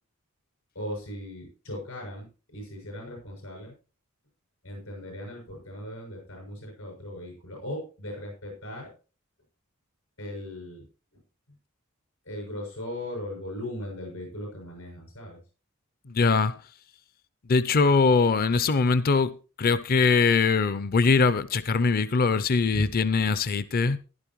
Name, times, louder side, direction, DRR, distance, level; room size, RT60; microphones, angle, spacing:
voice 1, 0.7-2.3 2.5-3.7 4.6-8.9 10.2-10.8 12.2-15.4 22.7-22.9, left 1 dB, 80° left, 6.7 m, -38 dB
voice 2, 16.1-16.5 17.5-24.0, left 4 dB, 45° left, 0.5 m, -22 dB
15.0 x 11.5 x 3.0 m
head